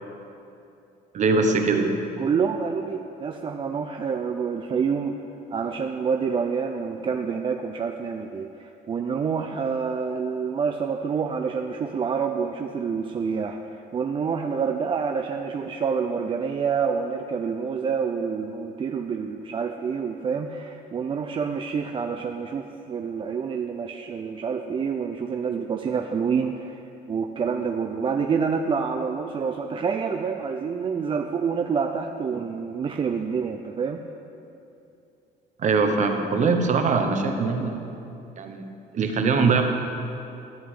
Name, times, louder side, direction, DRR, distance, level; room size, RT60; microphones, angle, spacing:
voice 1, 1.1-2.0 35.6-37.9 38.4-38.7 38.9-39.6, right 4 dB, 45° right, 5 dB, 1.0 m, -22 dB
voice 2, 2.2-5.1 5.5-13.6 13.9-26.8 27.1-34.0, right 6 dB, 30° right, 5 dB, 0.4 m, -27 dB
13.0 x 7.9 x 3.8 m, 2.7 s
cardioid pair, 110°, 17 cm